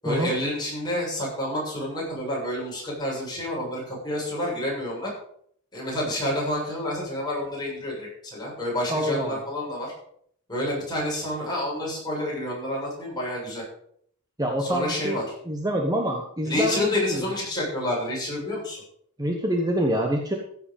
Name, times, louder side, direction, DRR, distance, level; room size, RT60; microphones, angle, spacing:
voice 1, 0.0-5.1 5.7-9.9 10.5-13.6 14.6-15.2 16.4-18.8, left 1 dB, 20° left, -4 dB, 7.1 m, -29 dB
voice 2, 8.9-9.3 14.4-15.2 15.5-17.2 19.2-20.4, equal, 15° right, 1 dB, 1.3 m, -26 dB
15.5 x 8.0 x 5.3 m, 0.64 s
head